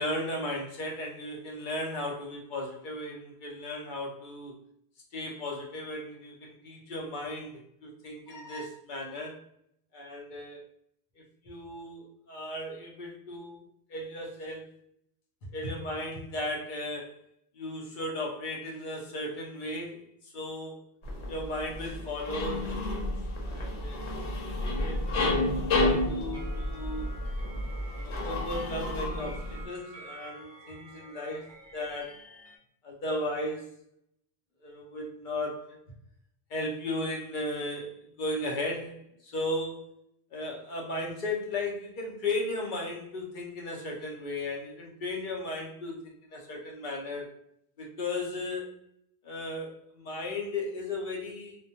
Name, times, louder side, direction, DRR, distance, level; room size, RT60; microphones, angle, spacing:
voice 1, 0.0-4.5 5.1-9.4 9.9-10.6 11.4-13.6 13.9-14.7 15.5-17.2 17.5-20.0 20.3-20.9 21.3-23.2 23.4-24.0 24.8-25.3 25.6-27.1 28.0-31.5 31.7-32.2 32.8-33.7 34.6-35.8 36.5-39.8 40.3-47.3 47.8-48.8 49.2-51.6, left 1 dB, 55° left, -1 dB, 0.8 m, -36 dB
sound 1, 21.0-29.7, left 2 dB, 90° left, 1.0 m, -31 dB
sound 2, 26.3-32.6, right 1 dB, 45° right, 0.3 m, -49 dB
2.2 x 2.2 x 2.7 m, 0.71 s
omnidirectional pair, 1.1 m